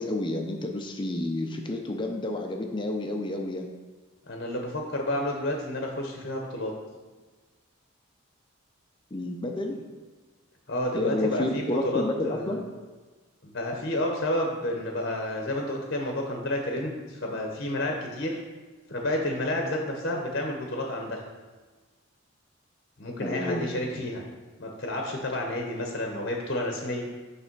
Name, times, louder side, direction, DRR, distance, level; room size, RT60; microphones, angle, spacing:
voice 1, 0.0-3.7 9.1-9.8 10.9-12.6 23.2-23.8, left 2 dB, 20° left, 3 dB, 0.5 m, -30 dB
voice 2, 4.3-6.7 10.7-12.6 13.4-18.4 18.9-21.2 23.0-24.2 24.6-27.0, left 1 dB, 45° left, 1 dB, 0.8 m, -30 dB
8.2 x 3.3 x 4.5 m, 1.3 s
head